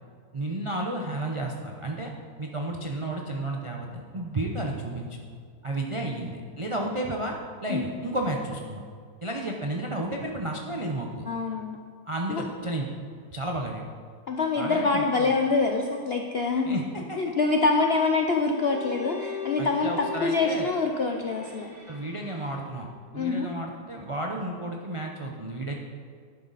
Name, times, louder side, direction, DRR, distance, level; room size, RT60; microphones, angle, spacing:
voice 1, 0.3-2.1 2.4-5.2 5.6-7.4 7.6-8.8 9.2-11.2 12.1-12.9 13.3-13.8 14.6-15.0 16.6-17.2 19.6-20.7 21.9-25.8, right 1 dB, 50° right, 0 dB, 0.3 m, -32 dB
voice 2, 11.3-11.8 12.3-12.4 14.3-16.8 17.2-21.7 23.1-23.5, left 4 dB, 70° left, 3 dB, 0.6 m, -25 dB
Bowed string instrument, 18.4-22.9, left 6 dB, 10° right, 2.8 m, -40 dB
11.5 x 9.5 x 4.1 m, 2.1 s
omnidirectional pair, 1.9 m